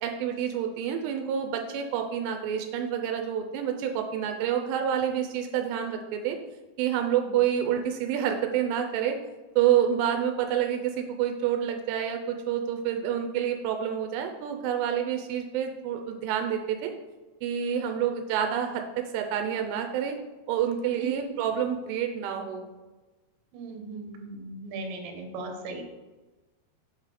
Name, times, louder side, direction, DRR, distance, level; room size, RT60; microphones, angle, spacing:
voice 1, 0.0-6.4 6.8-9.2 9.6-16.9 17.4-20.2 20.5-22.7, right 9 dB, 85° right, 5 dB, 2.7 m, -28 dB
voice 2, 17.8-18.1 21.0-21.3 23.5-25.8, right 3 dB, 70° right, 3 dB, 2.5 m, -38 dB
6.9 x 4.1 x 4.8 m, 1.2 s
omnidirectional pair, 4.9 m